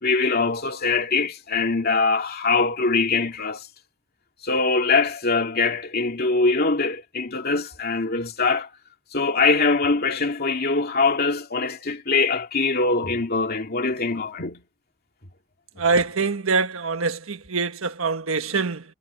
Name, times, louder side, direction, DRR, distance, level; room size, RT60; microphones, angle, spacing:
voice 1, 0.0-3.7 4.4-8.7 9.1-14.6, left 4 dB, 50° left, 2.5 m, -23 dB
voice 2, 15.8-18.8, right 4 dB, 85° right, 1.4 m, -24 dB
head